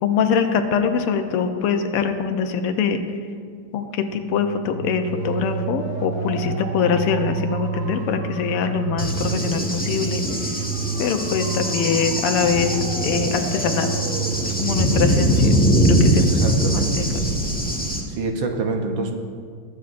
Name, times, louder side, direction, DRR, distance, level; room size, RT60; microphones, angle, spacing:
voice 1, 0.0-3.0 3.7-10.6 11.0-13.9 14.4-15.6 15.8-16.2 16.7-17.1, left 6 dB, 90° left, 7 dB, 1.7 m, -23 dB
sound 1, 4.1-15.9, right 6 dB, 80° right, 2.1 m, -30 dB
Cricket / Thunder, 9.0-18.0, equal, 5° left, 0.8 m, -22 dB
voice 2, 16.2-17.1 18.1-19.2, right 3 dB, 65° right, 3 dB, 1.5 m, -26 dB
22.0 x 8.4 x 2.5 m, 2.1 s
omnidirectional pair, 2.4 m